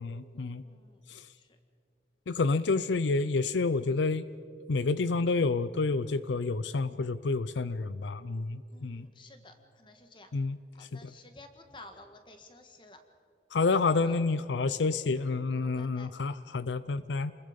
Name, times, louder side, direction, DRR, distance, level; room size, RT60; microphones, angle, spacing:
voice 1, 0.0-0.6 1.1-1.2 2.3-4.2 4.7-9.1 10.3-11.1 13.5-17.3, left 3 dB, 80° left, 15 dB, 0.5 m, -29 dB
voice 2, 0.6-1.0 1.3-1.6 8.7-10.3 10.8-13.0 14.0-14.2 15.6-16.2, left 2 dB, 25° left, 6 dB, 1.6 m, -53 dB
28.5 x 21.0 x 5.2 m, 2.4 s
head